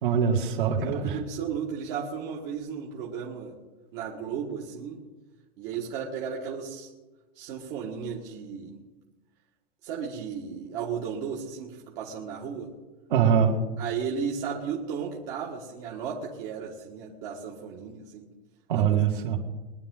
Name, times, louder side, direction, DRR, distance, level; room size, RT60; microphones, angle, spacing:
voice 1, 0.0-1.2 13.1-13.6 18.7-19.4, right 7 dB, 55° right, 1 dB, 2.5 m, -23 dB
voice 2, 0.8-3.5 3.9-5.0 5.6-6.9 7.4-8.8 9.8-12.7 13.8-18.3 18.7-19.1, right 7 dB, 30° right, -4 dB, 1.7 m, -34 dB
23.0 x 10.5 x 3.8 m, 1.1 s
supercardioid pair, 180°, 31 cm